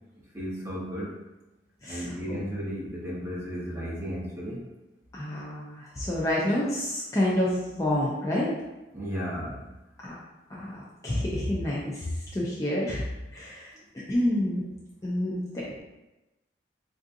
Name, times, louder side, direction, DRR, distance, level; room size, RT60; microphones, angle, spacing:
voice 1, 0.3-1.1 1.9-4.6 8.9-9.7, equal, 15° right, -7 dB, 0.8 m, -34 dB
voice 2, 1.8-2.4 5.1-8.6 10.0-10.1 10.5-13.1 13.3-13.7 14.1-14.6 15.0-15.8, left 1 dB, 20° left, -5 dB, 0.4 m, -28 dB
3.5 x 2.6 x 2.5 m, 1.0 s
head